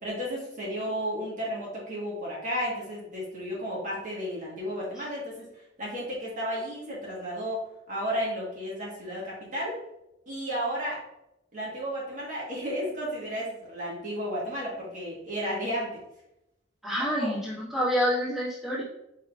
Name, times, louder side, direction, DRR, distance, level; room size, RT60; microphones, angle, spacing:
voice 1, 0.0-5.4 5.8-7.6 7.9-9.8 10.3-11.0 11.5-16.0 17.1-17.3, equal, 40° right, -5 dB, 1.4 m, -33 dB
voice 2, 16.8-18.8, equal, ahead, -9 dB, 1.5 m, -27 dB
4.7 x 4.5 x 2.4 m, 0.86 s
head